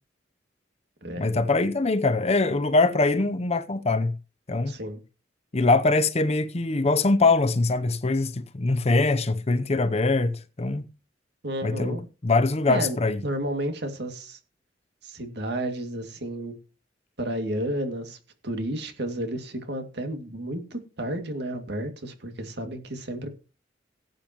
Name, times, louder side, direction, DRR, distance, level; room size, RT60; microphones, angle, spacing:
voice 1, 1.2-4.1 4.5-4.7 5.5-10.8 11.6-12.0 12.2-13.2, left 3 dB, 35° left, 0.7 m, -23 dB
voice 2, 4.7-5.0 11.4-12.0 12.7-13.0 13.2-14.4 15.0-16.5 17.2-18.2 18.4-23.3, right 1 dB, 65° right, 2.3 m, -31 dB
17.5 x 8.9 x 3.0 m
head